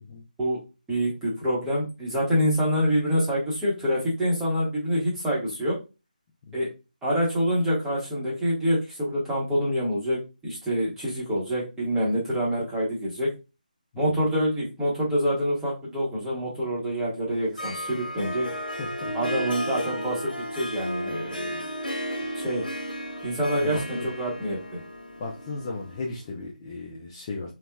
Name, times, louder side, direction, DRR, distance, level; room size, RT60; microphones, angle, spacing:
voice 1, 0.9-5.8 6.5-6.7 7.0-13.3 14.0-18.5 19.1-21.6 22.3-22.6 23.2-24.8, equal, 5° right, 0.8 m, -26 dB
Harp, 17.3-26.3, equal, 85° left, 0.8 m, -34 dB
voice 2, 18.8-19.1 23.5-24.1 25.2-27.5, left 3 dB, 25° left, 0.4 m, -35 dB
3.3 x 2.1 x 2.2 m
figure-of-eight pair, 160°, 5 cm